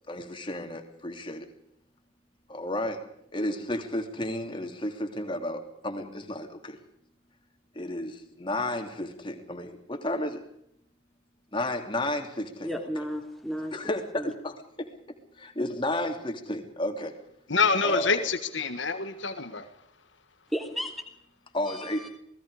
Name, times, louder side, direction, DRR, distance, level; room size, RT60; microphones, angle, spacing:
voice 1, 0.1-1.5 2.5-3.0 3.3-6.8 7.7-10.4 11.5-12.9 13.7-14.9 15.4-17.1 17.8-18.3 21.5-22.1, left 1 dB, 25° left, 4 dB, 2.9 m, -32 dB
voice 2, 12.6-13.7 14.2-14.3 20.5-20.9 21.7-22.1, equal, ahead, 3 dB, 3.2 m, -33 dB
voice 3, 17.5-19.6, left 4 dB, 75° left, 9 dB, 1.6 m, -26 dB
28.0 x 19.5 x 4.9 m, 0.74 s
head